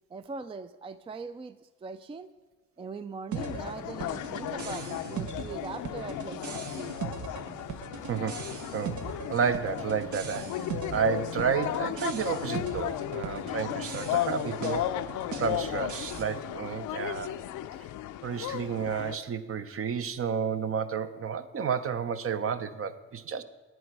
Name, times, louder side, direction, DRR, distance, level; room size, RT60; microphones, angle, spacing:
voice 1, 0.1-2.3 2.8-6.9, right 4 dB, 20° right, 13 dB, 0.3 m, -41 dB
sound 1, 3.3-16.2, right 6 dB, 75° right, 1.1 m, -40 dB
sound 2, 3.4-19.2, left 12 dB, 75° left, 0.5 m, -35 dB
voice 2, 8.1-14.8 15.4-17.3 18.2-23.4, right 6 dB, 50° right, 11 dB, 0.8 m, -31 dB
11.0 x 8.8 x 4.7 m, 1.4 s
cardioid pair, 90°, 30 cm